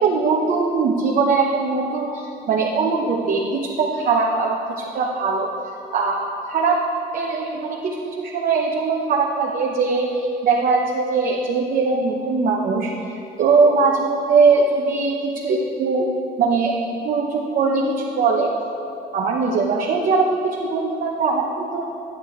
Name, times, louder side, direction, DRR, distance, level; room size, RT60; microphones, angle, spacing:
voice 1, 0.0-5.5 5.9-6.8 7.1-12.9 13.4-16.1 16.4-16.7 17.0-18.5 19.1-21.8, right 4 dB, 55° right, -2 dB, 0.9 m, -21 dB
9.7 x 7.5 x 4.5 m, 2.8 s
cardioid pair, 110°, 17 cm